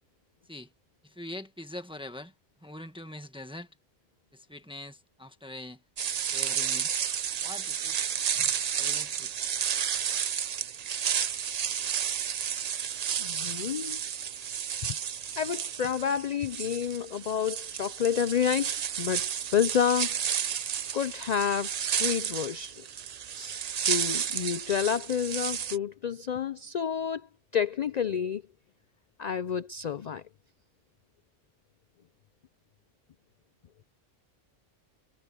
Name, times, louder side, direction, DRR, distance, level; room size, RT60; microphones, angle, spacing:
voice 1, 1.0-2.3 2.6-3.7 4.3-5.8 6.3-6.9 7.4-8.0 8.8-9.5, left 1 dB, 5° right, 1.4 m, -43 dB
sound 1, 6.0-25.8, right 8 dB, 55° right, 0.4 m, -32 dB
voice 2, 13.2-14.0 14.8-15.0 15.4-20.2 20.9-22.9 23.3-27.3 27.5-28.4 29.2-30.2, left 8 dB, 65° left, 0.4 m, -29 dB
omnidirectional pair, 1.3 m